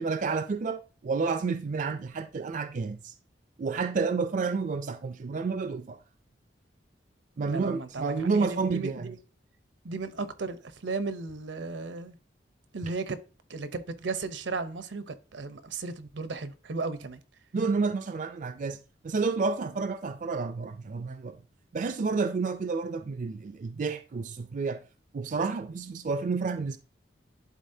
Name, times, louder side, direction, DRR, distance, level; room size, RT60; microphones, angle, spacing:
voice 1, 0.0-3.1 3.6-6.0 7.4-9.1 17.5-18.8 19.0-21.4 21.7-24.8 25.1-26.8, right 4 dB, 45° right, 0.4 m, -30 dB
voice 2, 7.4-9.2 9.8-12.2 12.7-13.2 13.5-17.2, right 3 dB, 80° right, 0.7 m, -35 dB
11.0 x 4.0 x 2.7 m
head